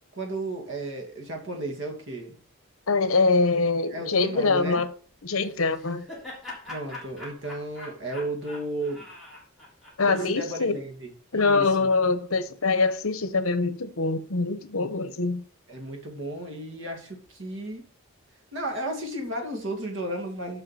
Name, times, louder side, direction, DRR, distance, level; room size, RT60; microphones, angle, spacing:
voice 1, 0.2-2.4 3.9-4.8 6.7-9.1 10.0-11.9 15.7-17.9 18.5-20.6, right 1 dB, 60° right, 2.4 m, -34 dB
voice 2, 2.9-4.9 5.2-6.1 10.0-10.8 11.3-15.4, left 3 dB, 75° left, 1.0 m, -24 dB
Laughter, 5.4-10.6, left 2 dB, ahead, 3.3 m, -43 dB
7.7 x 5.5 x 5.8 m
head